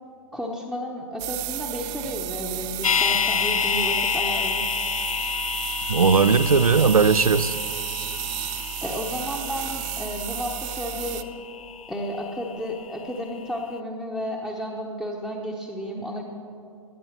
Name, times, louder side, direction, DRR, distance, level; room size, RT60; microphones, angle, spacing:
voice 1, 0.3-4.6 8.8-11.3 11.9-16.2, equal, 5° left, -3 dB, 0.9 m, -32 dB
sound 1, 1.2-11.2, right 13 dB, 20° right, 0.4 m, -33 dB
sound 2, 2.8-12.9 13.2-13.3, left 7 dB, 75° left, 0.5 m, -29 dB
voice 2, 5.9-7.5, right 5 dB, 85° right, 16 dB, 0.5 m, -18 dB
14.5 x 9.7 x 6.0 m, 2.5 s
figure-of-eight pair, 120°, 18 cm